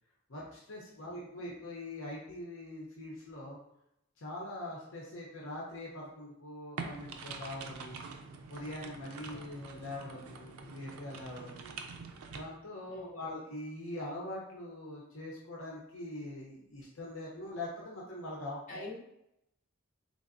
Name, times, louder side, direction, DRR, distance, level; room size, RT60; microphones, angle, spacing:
voice 1, 0.3-3.6 4.2-8.0 8.5-11.8 12.3-18.8, left 1 dB, 60° left, -4 dB, 0.7 m, -43 dB
voice 2, 0.9-1.6 9.2-9.5 12.9-13.5 18.7-19.0, left 2 dB, 35° left, -5 dB, 1.0 m, -48 dB
sound 1, 6.8-12.4, right 4 dB, 80° right, 0.5 m, -45 dB
3.8 x 3.2 x 2.6 m, 0.80 s
head